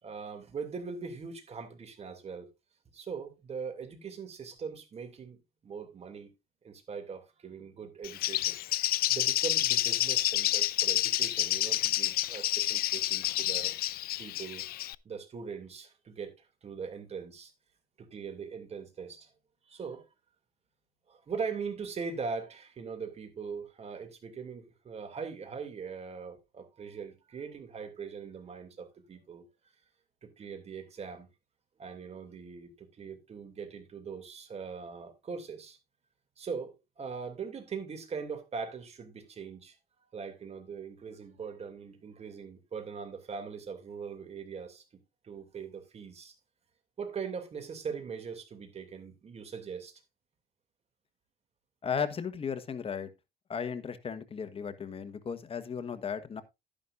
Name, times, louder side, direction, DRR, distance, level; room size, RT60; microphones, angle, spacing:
voice 1, 0.0-2.5 2.9-5.4 5.6-6.3 6.6-8.6 9.1-13.7 14.2-14.7 15.0-17.5 18.0-19.3 19.7-20.1 21.1-29.5 30.2-31.3 31.8-35.8 36.4-39.7 40.1-44.8 45.2-46.3 47.0-50.0, right 5 dB, 40° right, 2.7 m, -41 dB
Bird, 8.0-14.9, left 15 dB, 65° left, 0.4 m, -29 dB
voice 2, 51.8-53.1 53.5-56.4, left 6 dB, 35° left, 1.3 m, -35 dB
11.0 x 10.5 x 2.6 m
cardioid pair, 110°, 17 cm